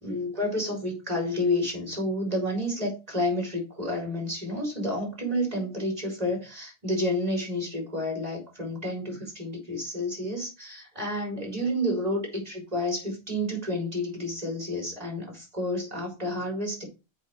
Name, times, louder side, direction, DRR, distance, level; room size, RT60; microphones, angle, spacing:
voice 1, 0.0-16.8, left 1 dB, 35° right, 0 dB, 4.4 m, -30 dB
7.2 x 5.3 x 6.7 m, 0.28 s
omnidirectional pair, 1.1 m